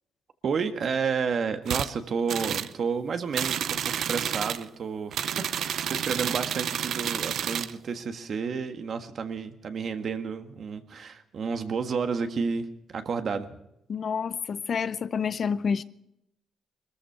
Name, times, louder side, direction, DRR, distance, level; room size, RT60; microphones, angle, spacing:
voice 1, 0.4-13.5, right 5 dB, 55° right, 1.6 m, -31 dB
sound 1, 1.7-1.9 2.3-2.7 3.3-4.6 5.1-7.7, right 9 dB, 70° right, 0.7 m, -30 dB
voice 2, 13.9-15.8, left 6 dB, 50° left, 0.6 m, -28 dB
21.5 x 14.0 x 4.7 m
cardioid pair, 90°, 0 cm